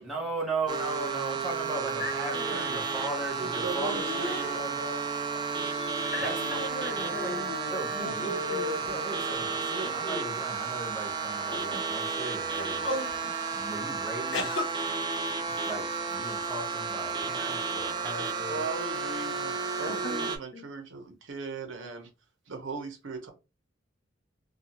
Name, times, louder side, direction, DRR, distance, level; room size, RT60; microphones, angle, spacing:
voice 1, 0.0-5.0 6.2-6.3 7.0-7.4 7.6-8.4 8.8-13.0 13.6-14.6 15.7-18.6, right 2 dB, ahead, 0.9 m, -37 dB
sound 1, 0.7-20.4, right 5 dB, 20° right, 0.3 m, -32 dB
voice 2, 2.0-2.7 6.1-9.3 13.2-13.3 15.5-15.6 19.8-20.6, left 2 dB, 45° left, 0.6 m, -40 dB
voice 3, 3.1-4.9 18.5-22.1 22.5-23.3, right 4 dB, 75° right, 0.8 m, -39 dB
sound 2, 3.9-4.6 5.6-6.3 6.7-7.8 8.2-8.9 9.6-10.7 11.5-11.8 12.5-13.2 14.3-14.6, left 2 dB, 80° left, 0.8 m, -36 dB
2.4 x 2.3 x 2.9 m
head